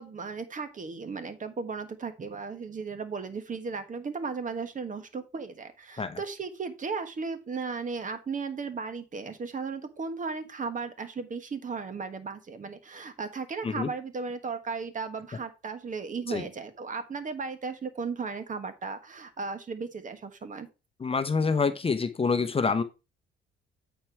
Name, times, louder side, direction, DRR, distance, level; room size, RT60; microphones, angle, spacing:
voice 1, 0.0-20.7, right 4 dB, 40° right, 10 dB, 1.4 m, -36 dB
voice 2, 21.0-22.8, left 5 dB, 30° left, 10 dB, 0.8 m, -27 dB
8.7 x 4.5 x 4.6 m, 0.28 s
cardioid pair, 90°, 20 cm